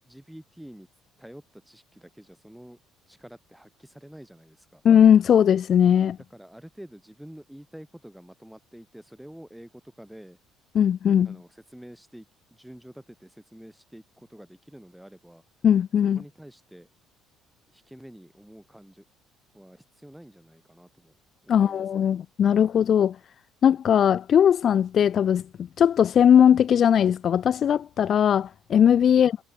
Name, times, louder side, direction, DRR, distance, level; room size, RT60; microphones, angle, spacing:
voice 1, 0.0-0.9 1.2-2.8 3.1-4.8 6.3-10.4 11.2-15.4 16.2-16.9 17.7-19.0 19.5-21.1 21.4-22.1 29.1-29.2, equal, 5° right, 3.6 m, -48 dB
voice 2, 4.8-6.2 10.7-11.3 15.6-16.2 21.5-23.2 23.6-29.4, left 9 dB, 50° left, 0.3 m, -19 dB
hypercardioid pair, 55°, 0 cm